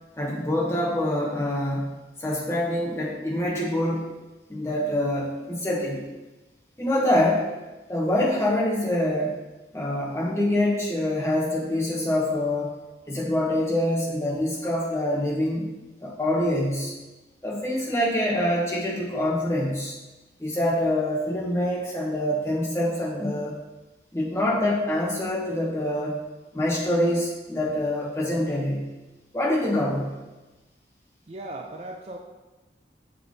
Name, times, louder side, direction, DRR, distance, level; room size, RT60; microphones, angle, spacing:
voice 1, 0.2-4.0 4.5-6.1 6.8-7.5 7.9-9.4 9.7-12.8 13.1-15.7 16.0-16.9 17.4-20.0 20.4-23.6 24.1-26.2 26.5-28.9 29.3-30.2, left 1 dB, 15° left, -4 dB, 1.2 m, -25 dB
voice 2, 31.3-32.2, right 2 dB, 35° right, 2 dB, 0.4 m, -37 dB
6.9 x 3.8 x 3.8 m, 1.1 s
head